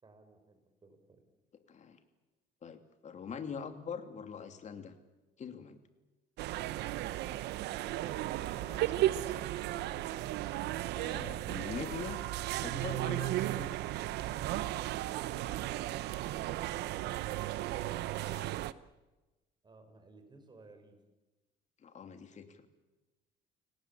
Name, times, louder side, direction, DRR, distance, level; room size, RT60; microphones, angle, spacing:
voice 1, 0.0-1.2 19.6-21.0, right 3 dB, 25° right, 6 dB, 5.6 m, -59 dB
voice 2, 1.7-2.0 2.6-4.9 5.4-5.8 8.3-9.3 10.0-10.4 10.9-12.2 12.6-13.8 18.2-18.6 21.8-22.7, left 6 dB, 45° left, 8 dB, 2.8 m, -44 dB
sound 1, 6.4-18.7, right 15 dB, 85° right, 0.9 m, -35 dB
sound 2, 8.0-15.7, left 11 dB, 60° left, 2.5 m, -61 dB
29.5 x 18.5 x 8.6 m, 1.1 s
cardioid pair, 110°, 17 cm